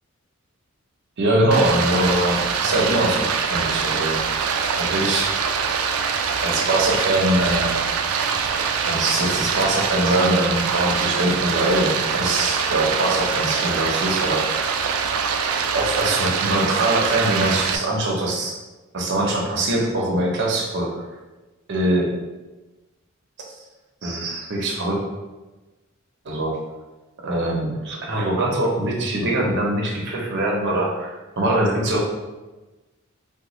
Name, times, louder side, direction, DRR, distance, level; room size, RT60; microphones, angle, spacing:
voice 1, 1.2-4.2 4.8-5.4 6.4-7.8 8.9-14.7 15.7-18.5 18.9-21.0 21.7-22.1 24.0-25.0 26.2-26.6 27.2-32.0, right 1 dB, 60° right, -1 dB, 0.7 m, -22 dB
Stream, 1.5-17.8, right 6 dB, 90° right, 0.3 m, -24 dB
3.6 x 2.2 x 3.0 m, 1.1 s
head